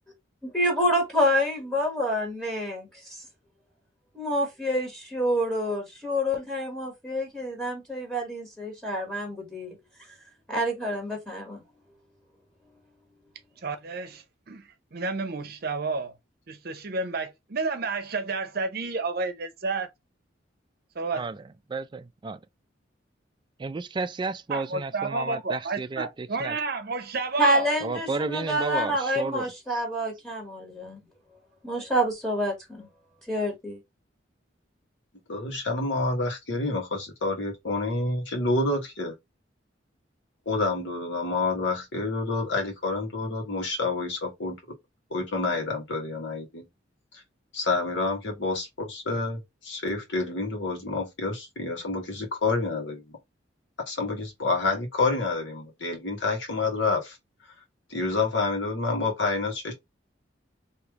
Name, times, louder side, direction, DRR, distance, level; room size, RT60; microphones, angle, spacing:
voice 1, 0.4-3.2 4.1-9.7 10.5-11.6 27.4-31.0 31.6-32.9 33.3-33.8, equal, 5° left, 1.3 m, -27 dB
voice 2, 13.6-14.6 14.9-16.1 16.5-19.9 20.9-21.3 24.5-27.7, right 4 dB, 55° right, 0.7 m, -31 dB
voice 3, 21.7-22.4 23.6-26.6 27.8-29.8, right 4 dB, 25° right, 0.3 m, -32 dB
voice 4, 35.3-39.1 40.4-44.5 45.1-46.6 47.1-47.2 47.5-53.1 53.9-57.2 57.9-59.7, left 3 dB, 85° left, 1.5 m, -28 dB
3.2 x 2.9 x 3.6 m
head